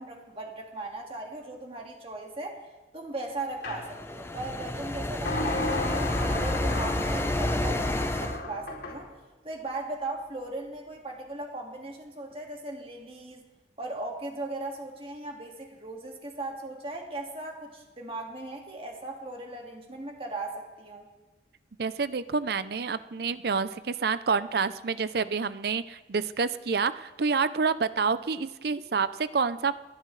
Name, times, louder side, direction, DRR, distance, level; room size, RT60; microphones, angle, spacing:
voice 1, 0.0-2.6 2.9-9.1 9.4-13.4 13.8-21.1, right 2 dB, 30° right, 1 dB, 2.0 m, -38 dB
sound 1, 3.6-3.8 5.3-9.0, left 2 dB, 85° left, 4.5 m, -33 dB
sound 2, 3.7-8.4, left 1 dB, 15° left, 0.7 m, -30 dB
voice 2, 21.8-29.7, right 5 dB, 60° right, 14 dB, 0.5 m, -28 dB
29.0 x 11.0 x 3.2 m, 1.2 s
head